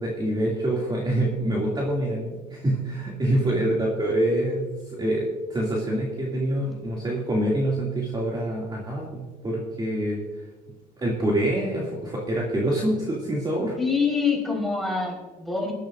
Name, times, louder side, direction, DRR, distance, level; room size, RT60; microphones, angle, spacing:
voice 1, 0.0-10.2 11.0-13.8, right 1 dB, 25° right, -4 dB, 2.5 m, -26 dB
voice 2, 13.8-15.7, left 5 dB, ahead, -2 dB, 4.4 m, -26 dB
20.0 x 12.5 x 2.6 m, 1.3 s
cardioid pair, 110°, 17 cm